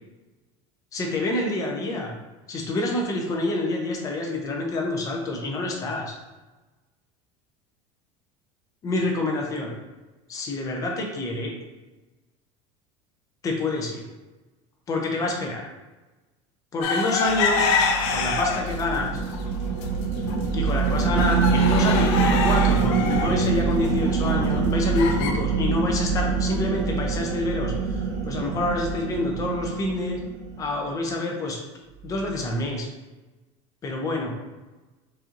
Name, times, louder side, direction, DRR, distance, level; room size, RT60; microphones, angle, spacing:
voice 1, 0.9-2.1 2.5-6.1 8.8-9.7 10.3-11.6 13.4-14.0 14.9-15.6 16.7-17.7 18.1-19.1 20.5-30.2 30.6-31.6 32.0-32.9 33.8-34.4, left 2 dB, 20° left, 1 dB, 0.6 m, -27 dB
sound 1, 16.8-18.8 19.3-19.9 20.3-20.4 20.7-25.3, left 4 dB, 65° left, 0.5 m, -26 dB
sound 2, 17.2-30.8, right 5 dB, 50° right, 0.6 m, -25 dB
4.6 x 2.6 x 2.9 m, 1.1 s
cardioid pair, 170°, 16 cm